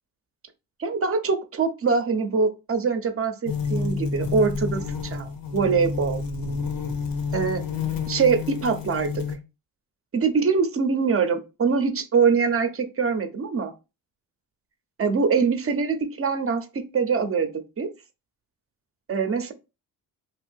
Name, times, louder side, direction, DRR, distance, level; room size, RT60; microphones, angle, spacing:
voice 1, 0.8-6.2 7.3-7.6 8.1-9.2 10.1-13.7 15.0-17.5 17.8-17.9 19.1-19.5, right 5 dB, 40° right, 8 dB, 0.7 m, -23 dB
sound 1, 3.5-9.4, left 5 dB, 70° left, 0.8 m, -29 dB
2.7 x 2.4 x 3.5 m, 0.28 s
cardioid pair, 75°, 36 cm